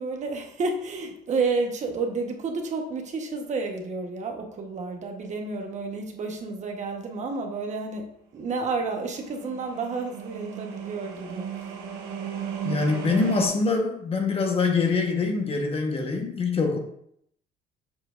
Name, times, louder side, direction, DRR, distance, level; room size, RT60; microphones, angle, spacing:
voice 1, 0.0-11.6, right 4 dB, 45° right, 3 dB, 1.1 m, -30 dB
sound 1, 8.8-13.5, right 8 dB, 80° right, 1.2 m, -36 dB
voice 2, 12.6-16.8, left 4 dB, 35° left, 3 dB, 1.1 m, -24 dB
7.2 x 5.8 x 2.5 m, 0.70 s
cardioid pair, 110°, 17 cm